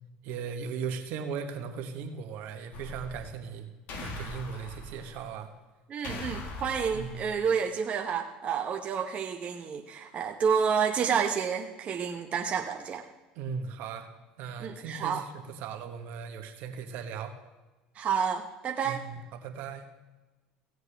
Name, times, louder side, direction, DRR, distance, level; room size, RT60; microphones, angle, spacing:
voice 1, 0.2-3.7 3.9-5.5 6.0-6.3 6.9-7.2 13.3-14.1 14.4-17.3 18.8-19.9, right 6 dB, 70° right, 6 dB, 1.3 m, -38 dB
sound 1, 2.7-3.4 3.9-5.3 6.0-7.4, left 2 dB, 60° left, 1.5 m, -41 dB
voice 2, 5.9-13.1 14.6-15.2 17.9-19.0, right 6 dB, 40° right, 3 dB, 0.8 m, -29 dB
16.5 x 8.0 x 3.4 m, 1.2 s
supercardioid pair, 90°, 3 cm